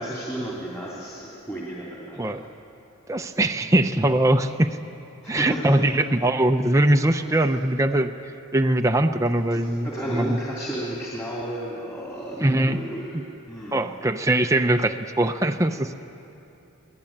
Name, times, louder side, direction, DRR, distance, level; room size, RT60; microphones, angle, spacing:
voice 1, 0.0-2.4 5.2-5.8 7.3-7.4 9.5-13.9, right 1 dB, 15° left, -5 dB, 2.8 m, -33 dB
voice 2, 3.1-4.7 5.3-8.1 8.5-10.4 12.4-12.8 13.7-15.9, right 1 dB, 15° right, 5 dB, 0.6 m, -21 dB
24.0 x 17.5 x 8.7 m, 2.8 s
head